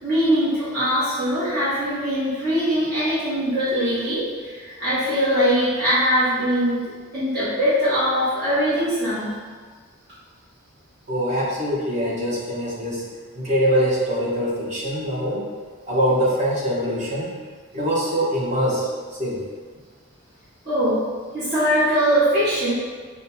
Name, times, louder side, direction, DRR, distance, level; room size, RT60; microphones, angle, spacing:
voice 1, 0.0-6.8 7.1-9.4 20.6-21.0 21.3-22.7, equal, 50° right, -13 dB, 1.3 m, -21 dB
voice 2, 11.1-13.0 13.3-15.4 15.9-17.3 17.7-18.9 19.2-19.4, equal, 35° right, -7 dB, 1.1 m, -23 dB
6.2 x 2.3 x 2.7 m, 1.5 s
head